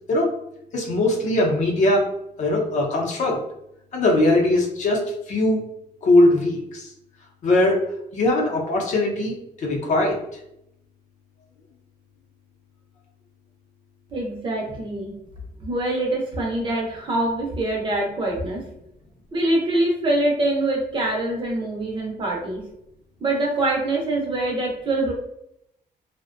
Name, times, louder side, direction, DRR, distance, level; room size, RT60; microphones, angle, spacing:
voice 1, 0.7-2.1 2.4-3.4 3.9-5.0 5.3-5.6 6.0-6.9 7.4-7.8 8.1-10.2, left 1 dB, 50° left, -1 dB, 0.6 m, -20 dB
voice 2, 14.1-15.1 15.6-18.6 19.3-22.6 23.2-25.1, right 2 dB, 30° right, -1 dB, 0.5 m, -24 dB
2.5 x 2.1 x 2.4 m, 0.79 s
cardioid pair, 180°, 16 cm